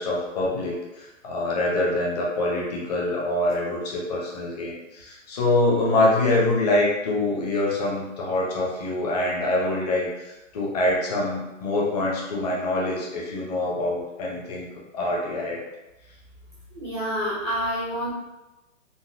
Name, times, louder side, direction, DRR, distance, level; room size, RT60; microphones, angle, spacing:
voice 1, 0.0-14.7 14.9-15.6, left 2 dB, 30° left, -4 dB, 0.7 m, -25 dB
voice 2, 16.7-18.1, equal, 20° right, -8 dB, 0.4 m, -28 dB
3.9 x 2.0 x 2.5 m, 1.0 s
hypercardioid pair, 160°, 38 cm